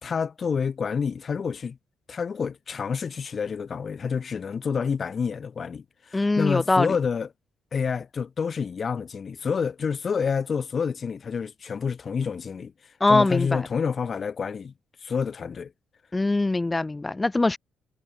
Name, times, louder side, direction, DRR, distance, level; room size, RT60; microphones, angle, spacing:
voice 1, 0.0-1.8 2.1-7.3 7.7-12.7 13.1-14.7 15.0-15.7, left 6 dB, 45° left, 2.9 m, -28 dB
voice 2, 6.1-6.9 13.0-13.6 16.1-17.6, left 2 dB, 20° left, 1.6 m, -22 dB
cardioid pair, 90°, 0 cm